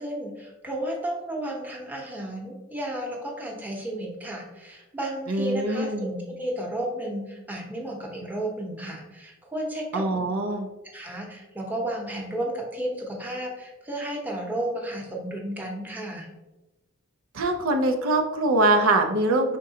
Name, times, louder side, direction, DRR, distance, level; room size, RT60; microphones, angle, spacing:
voice 1, 0.0-10.0 10.8-16.3, right 1 dB, 10° right, -1 dB, 0.8 m, -33 dB
voice 2, 5.3-6.1 9.9-10.7 17.3-19.6, right 2 dB, 85° right, 5 dB, 0.6 m, -23 dB
5.2 x 3.7 x 2.7 m, 1.0 s
head